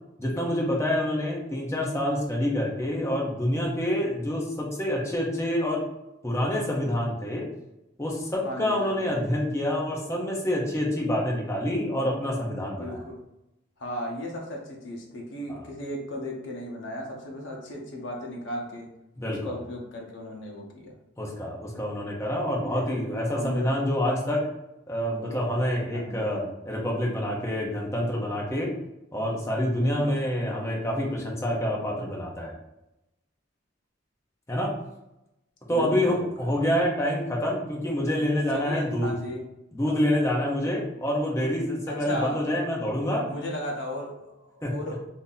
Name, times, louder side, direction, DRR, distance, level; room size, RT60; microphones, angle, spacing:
voice 1, 0.2-5.8 6.2-7.5 8.0-13.0 15.5-15.6 19.2-19.6 21.2-24.5 24.9-28.7 29.1-32.5 34.5-34.8 35.7-39.1 39.7-43.3 44.6-44.8, left 1 dB, 15° left, -3 dB, 0.7 m, -27 dB
voice 2, 8.4-9.2 12.8-13.2 13.8-18.9 19.2-21.0 22.4-22.9 23.3-23.9 25.9-26.6 35.7-36.7 38.5-39.5 41.9-42.4 43.3-45.0, equal, 65° left, -1 dB, 0.8 m, -36 dB
2.7 x 2.7 x 3.9 m, 0.89 s
head